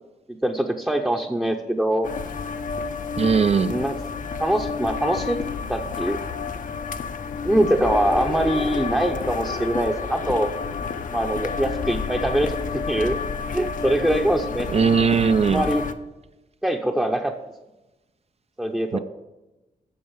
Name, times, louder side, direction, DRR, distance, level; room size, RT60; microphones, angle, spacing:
voice 1, 0.4-2.1 3.6-4.0 4.4-5.4 5.7-6.2 7.4-10.5 11.1-12.5 12.9-13.2 13.5-14.7 15.5-15.8 16.6-17.3 18.6-19.0, right 1 dB, 5° right, 1 dB, 0.7 m, -23 dB
sound 1, 2.0-15.9, left 5 dB, 60° left, 0.7 m, -30 dB
voice 2, 3.2-3.7 14.7-15.6 18.9-19.0, right 6 dB, 45° right, 12 dB, 0.4 m, -19 dB
sound 2, 7.8-13.4, left 5 dB, 85° left, 1.5 m, -35 dB
8.6 x 6.4 x 7.3 m, 1.0 s
wide cardioid pair, 120°, 15 cm